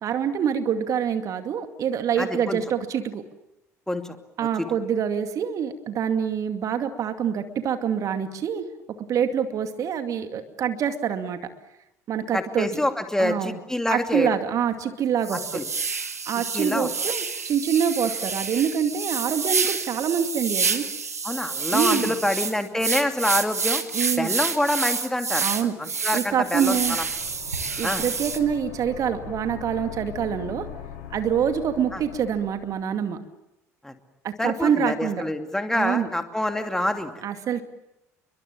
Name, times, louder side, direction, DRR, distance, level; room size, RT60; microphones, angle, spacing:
voice 1, 0.0-3.2 4.4-8.7 9.1-11.4 12.1-12.7 13.2-13.6 13.9-15.4 16.3-20.9 21.7-22.1 23.9-24.3 25.4-25.7 26.1-27.0 27.8-30.7 31.1-33.2 34.2-35.2 35.7-36.1 37.2-37.6, right 8 dB, 45° right, 8 dB, 2.3 m, -25 dB
voice 2, 2.2-2.6 3.9-4.2 4.6-4.7 12.3-14.3 15.5-15.6 16.5-16.9 21.2-23.8 24.2-25.4 25.8-27.0 27.8-28.1 31.9-32.0 33.8-33.9 34.4-37.1, left 1 dB, 5° left, 6 dB, 2.7 m, -26 dB
sound 1, 14.0-14.1 14.6-14.7 15.2-28.4, right 5 dB, 80° right, 1.4 m, -28 dB
sound 2, 26.4-32.9, left 9 dB, 60° left, 5.1 m, -41 dB
30.0 x 23.5 x 7.5 m, 0.86 s
figure-of-eight pair, 60°, 8 cm